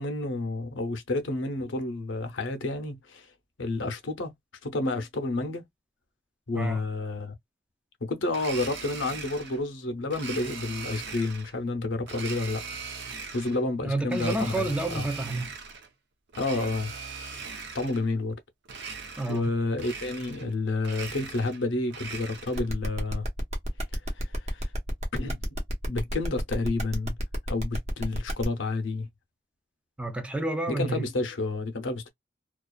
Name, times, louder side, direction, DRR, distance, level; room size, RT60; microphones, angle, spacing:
voice 1, 0.0-3.3 3.6-4.3 4.6-5.6 6.5-7.3 8.0-12.6 13.3-15.1 16.4-16.9 17.7-18.4 19.3-23.3 24.1-24.7 25.1-25.4 25.8-27.2 27.5-29.1 30.7-32.1, left 2 dB, 75° left, 0.6 m, -30 dB
Domestic sounds home sounds, 8.3-9.6 10.1-11.5 12.0-13.6 14.1-15.9 16.3-18.1 18.6-19.5 19.8-20.5 20.8-22.7, right 5 dB, 65° right, 0.6 m, -40 dB
voice 2, 13.8-15.5 19.2-19.5 30.0-31.0, right 2 dB, 5° right, 0.4 m, -30 dB
Funny Little Lines, 22.5-28.4, equal, 35° right, 0.9 m, -32 dB
2.4 x 2.3 x 2.2 m
head